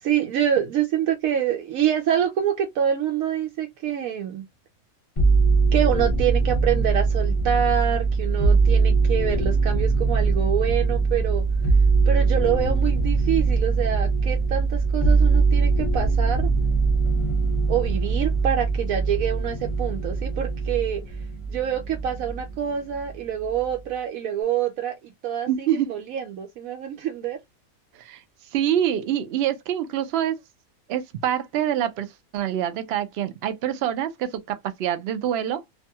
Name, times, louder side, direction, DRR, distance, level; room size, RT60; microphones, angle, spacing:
voice 1, 0.0-4.5 5.7-11.4 12.1-16.5 17.7-25.0 25.2-27.4, right 9 dB, 80° right, 1.0 m, -26 dB
sound 1, 5.2-22.6 22.9-23.7, right 4 dB, 30° left, 0.7 m, -22 dB
voice 2, 25.5-25.9 28.0-28.2 28.5-30.4 30.9-32.1 32.3-35.6, right 10 dB, 65° right, 0.6 m, -25 dB
2.6 x 2.2 x 2.7 m
omnidirectional pair, 1.4 m